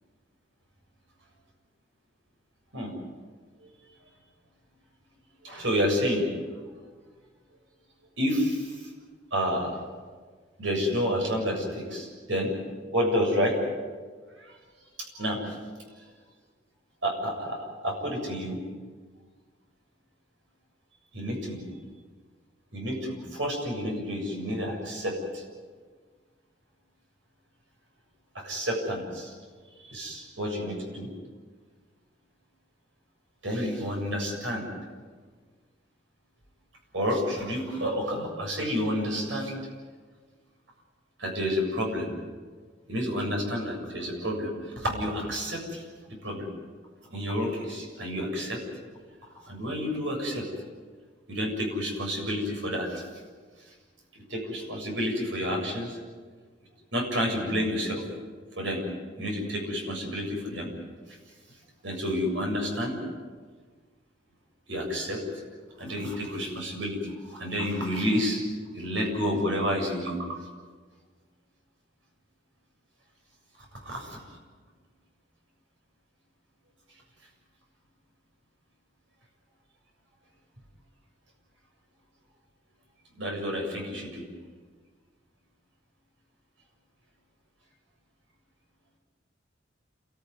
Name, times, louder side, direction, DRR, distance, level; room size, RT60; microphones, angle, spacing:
voice 1, 5.4-6.6 8.2-8.9 9.3-9.8 10.6-12.5 12.9-13.6 14.4-14.6 15.0-15.6 17.0-18.6 21.1-21.6 22.7-25.4 28.3-29.3 29.8-31.1 33.4-34.7 36.9-39.6 41.2-42.1 42.9-44.5 44.8-46.5 47.1-48.6 49.5-50.5 51.3-53.0 54.1-56.0 56.9-58.0 58.6-58.8 59.2-60.7 61.1-61.2 61.8-63.0 64.7-65.2 65.8-68.4 68.7-70.5 73.8-74.4 83.2-84.2, equal, 85° right, 1 dB, 7.3 m, -30 dB
29.5 x 14.0 x 9.8 m, 1.5 s
head